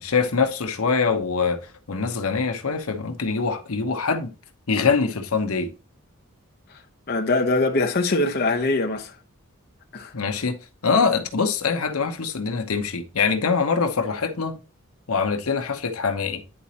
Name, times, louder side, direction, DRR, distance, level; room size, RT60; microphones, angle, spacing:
voice 1, 0.0-1.6 1.9-4.3 4.7-5.7 10.1-10.6 10.8-14.6 15.1-16.4, left 5 dB, 80° left, 0.9 m, -23 dB
voice 2, 7.1-9.1 9.9-10.1, left 2 dB, 45° left, 0.8 m, -22 dB
10.0 x 4.2 x 2.8 m
head